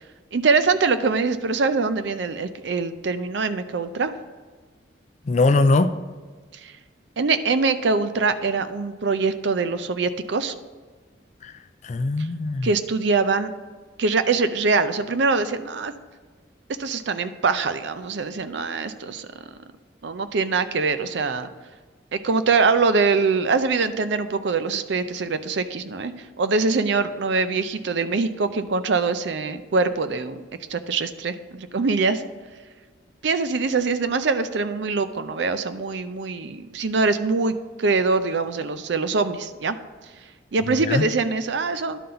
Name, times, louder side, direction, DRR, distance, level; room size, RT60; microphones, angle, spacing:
voice 1, 0.3-4.1 6.6-6.7 7.2-10.5 12.6-13.5 14.0-15.9 16.8-19.3 20.0-21.5 22.1-30.4 30.7-32.2 33.2-39.8 40.5-42.0, right 4 dB, 70° right, 11 dB, 0.5 m, -23 dB
voice 2, 5.3-6.0 11.4-12.7 40.7-41.1, left 3 dB, 40° left, 10 dB, 0.4 m, -21 dB
11.0 x 3.9 x 5.6 m, 1.4 s
head